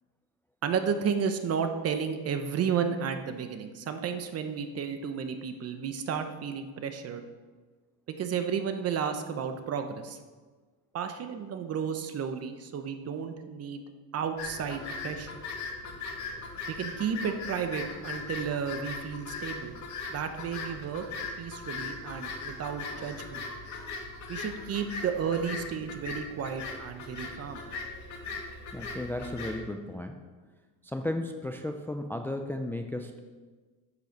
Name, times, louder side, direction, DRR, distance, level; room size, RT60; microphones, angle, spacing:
voice 1, 0.6-7.2 8.1-10.2 10.9-13.8 14.1-15.3 16.7-19.8 20.1-23.4 24.3-27.6, right 7 dB, 40° right, 7 dB, 0.8 m, -32 dB
sound 1, 14.4-29.6, left 3 dB, 45° left, 2.0 m, -39 dB
voice 2, 28.7-30.2 30.8-33.2, left 1 dB, 5° left, 5 dB, 0.4 m, -34 dB
9.7 x 6.8 x 5.9 m, 1.4 s
cardioid pair, 135°, 40 cm